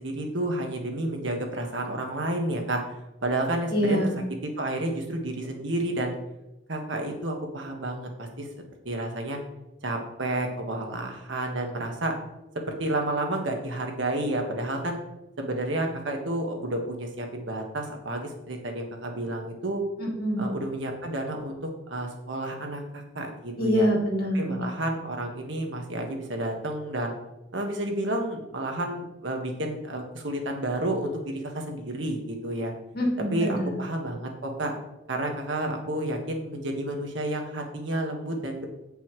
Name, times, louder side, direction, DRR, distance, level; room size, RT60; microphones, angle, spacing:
voice 1, 0.0-2.8 3.2-4.0 4.6-6.1 6.7-8.5 8.8-9.4 9.8-12.1 12.8-15.0 15.4-19.8 20.4-21.6 21.9-23.9 24.3-27.1 27.5-32.7 33.3-34.7 35.1-38.6, right 1 dB, 75° right, 2 dB, 1.7 m, -30 dB
voice 2, 3.7-4.2 20.0-20.5 23.6-24.6 32.9-33.8, equal, 50° left, -2 dB, 2.6 m, -25 dB
16.5 x 5.6 x 3.2 m, 0.94 s
head